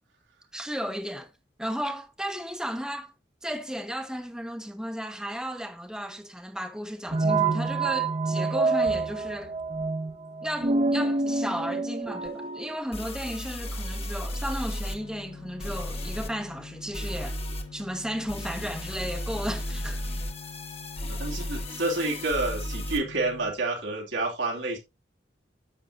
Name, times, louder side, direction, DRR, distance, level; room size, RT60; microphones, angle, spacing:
voice 1, 0.5-1.3 1.6-3.1 3.4-9.6 10.4-17.4 17.7-20.0, equal, 5° right, 1.0 m, -34 dB
sound 1, 7.1-12.8, right 3 dB, 35° right, 0.9 m, -27 dB
sound 2, 12.3-12.4 12.9-15.0 15.6-16.3 16.9-17.6 18.3-23.0, equal, 35° left, 1.4 m, -34 dB
sound 3, 14.9-23.5, left 4 dB, 80° left, 3.3 m, -45 dB
voice 2, 21.0-24.8, right 2 dB, 85° right, 2.8 m, -29 dB
10.0 x 7.3 x 2.7 m
head